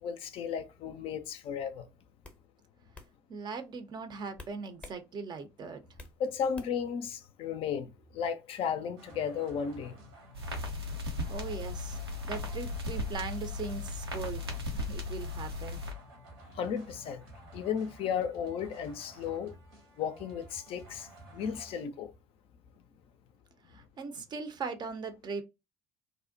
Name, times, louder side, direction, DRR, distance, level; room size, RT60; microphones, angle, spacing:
voice 1, 0.0-1.9 6.2-10.0 16.5-17.2 17.5-19.6 20.0-22.1, left 7 dB, 45° left, 0.4 m, -34 dB
sound 1, 1.4-1.7 2.2-2.4 2.9-3.1 4.4-5.0 5.4-6.2 6.5-6.9, left 2 dB, 10° left, 0.6 m, -49 dB
voice 2, 3.3-5.8 11.3-12.0 12.2-14.5 14.7-15.8 23.7-25.4, right 5 dB, 35° right, 0.5 m, -39 dB
sound 2, 9.0-21.8, right 1 dB, 70° right, 0.9 m, -52 dB
sound 3, 10.3-15.9, left 2 dB, 90° right, 0.6 m, -36 dB
2.6 x 2.1 x 2.5 m
figure-of-eight pair, 60°, 13 cm